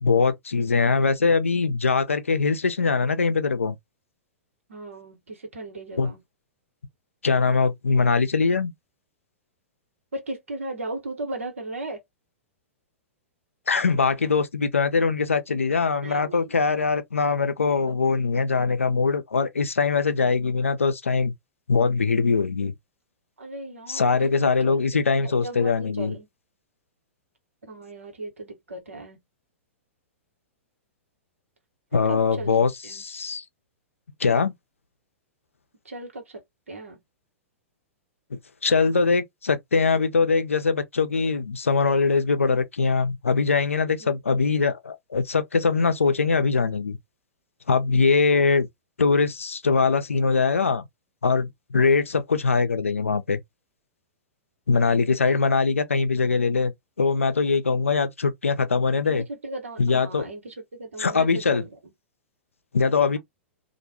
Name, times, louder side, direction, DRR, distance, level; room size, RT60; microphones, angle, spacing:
voice 1, 0.0-3.8 6.0-6.1 7.2-8.7 13.7-21.3 21.7-22.7 23.9-26.1 31.9-33.4 34.2-34.5 38.6-47.0 47.7-48.7 49.0-50.8 51.2-53.4 54.7-56.7 57.0-59.2 59.8-60.3 61.0-61.6 62.7-63.2, left 4 dB, 90° left, 0.4 m, -22 dB
voice 2, 4.7-6.2 10.1-12.0 16.0-16.7 17.8-17.9 23.4-24.8 25.2-26.3 27.6-29.2 32.1-32.5 32.8-33.0 35.8-36.4 36.7-37.0 44.0-44.1 59.0-61.7, right 2 dB, 80° right, 1.2 m, -37 dB
2.4 x 2.2 x 2.9 m
hypercardioid pair, 105°, 7 cm